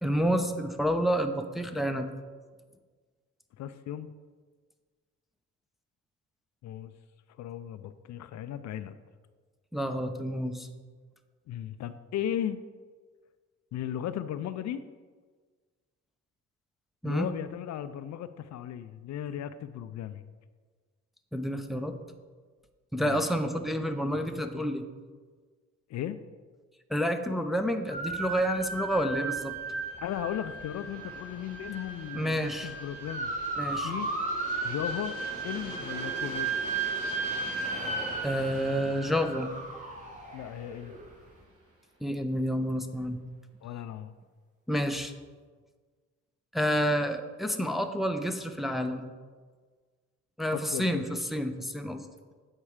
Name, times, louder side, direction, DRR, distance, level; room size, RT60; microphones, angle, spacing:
voice 1, 0.0-2.1 9.7-10.7 17.0-17.3 21.3-22.0 22.9-24.8 26.9-29.5 32.1-32.7 33.6-33.9 38.2-39.5 42.0-43.2 44.7-45.1 46.5-49.1 50.4-52.0, equal, ahead, 5 dB, 0.6 m, -29 dB
voice 2, 3.6-4.1 6.6-6.9 7.4-9.0 11.5-12.6 13.7-14.8 17.0-20.2 23.0-23.2 25.9-26.2 30.0-33.3 33.7-34.1 34.6-35.1 35.4-36.5 40.3-40.9 43.6-44.1 50.7-51.0, left 10 dB, 65° left, 12 dB, 0.5 m, -36 dB
sound 1, 27.9-41.0, right 3 dB, 25° right, 1.5 m, -35 dB
Aircraft, 28.9-41.7, right 2 dB, 50° right, 1.7 m, -47 dB
8.7 x 4.4 x 4.9 m, 1.5 s
cardioid pair, 90°, 30 cm